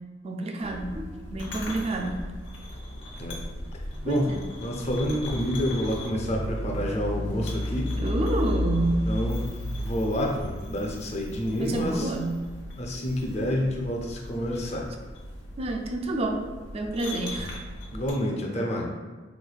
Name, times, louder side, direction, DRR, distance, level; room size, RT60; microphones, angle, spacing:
voice 1, 0.2-2.2 4.0-4.5 8.0-9.1 11.6-12.5 15.6-16.4 16.7-17.6, right 2 dB, 35° right, 3 dB, 0.3 m, -29 dB
sound 1, 0.6-18.1, left 1 dB, 85° left, 0.9 m, -35 dB
voice 2, 4.6-7.9 9.1-9.4 9.8-12.1 12.8-14.9 17.9-18.9, equal, 35° left, 0 dB, 0.5 m, -28 dB
3.5 x 3.1 x 2.3 m, 1.4 s
head